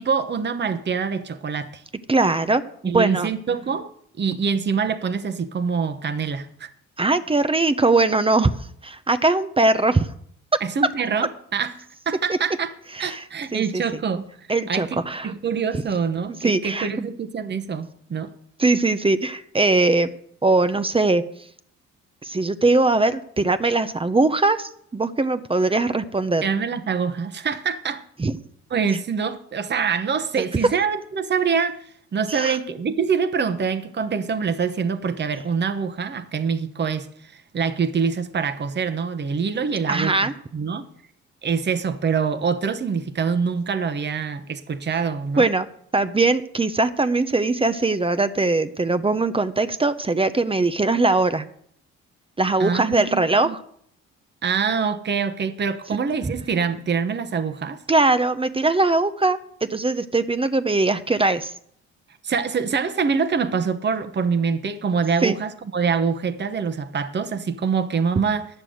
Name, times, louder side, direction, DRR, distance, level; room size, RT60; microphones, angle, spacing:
voice 1, 0.0-1.8 2.8-3.9 4.2-6.7 10.6-12.7 13.0-14.3 14.7-18.3 26.4-28.0 28.7-31.8 32.1-40.9 41.4-45.5 52.6-53.5 54.4-57.8 62.2-68.5, right 6 dB, 35° right, 1.0 m, -25 dB
voice 2, 2.1-3.3 7.0-8.5 8.8-10.1 12.3-12.4 13.0-13.2 13.5-13.8 14.5-15.3 16.4-17.1 18.6-20.1 20.4-21.2 22.2-26.4 28.2-28.3 30.4-30.5 32.3-32.6 39.9-40.3 45.4-45.7 45.9-51.4 52.4-53.6 57.9-61.5 65.2-65.4, right 3 dB, 20° right, 0.7 m, -21 dB
11.0 x 6.8 x 7.8 m
cardioid pair, 90°, 30 cm